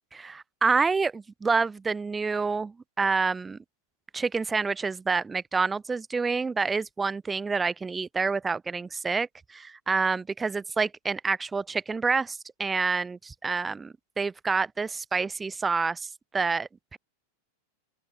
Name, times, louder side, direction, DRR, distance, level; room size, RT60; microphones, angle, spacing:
voice 1, 0.1-3.6 4.1-17.0, right 4 dB, 15° right, 1.0 m, -28 dB
open air
figure-of-eight pair, 90°, 0 cm